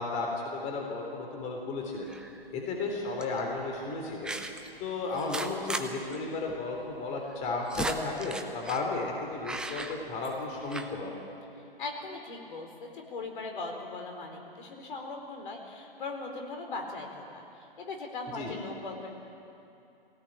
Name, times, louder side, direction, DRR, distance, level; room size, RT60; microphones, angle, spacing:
voice 1, 0.0-2.1 2.5-4.3 4.8-11.1 18.3-18.6, left 3 dB, 25° left, 1 dB, 3.6 m, -34 dB
sound 1, 2.1-2.5 3.2-3.4 4.2-4.7 5.1-5.9 6.1-6.2 6.5-6.6 7.3-8.9 9.4-10.4 10.7-10.9, right 2 dB, 5° right, 0.6 m, -36 dB
voice 2, 11.8-19.1, left 3 dB, 60° left, 3 dB, 4.4 m, -39 dB
21.0 x 17.5 x 8.9 m, 2.7 s
figure-of-eight pair, 130°, 30 cm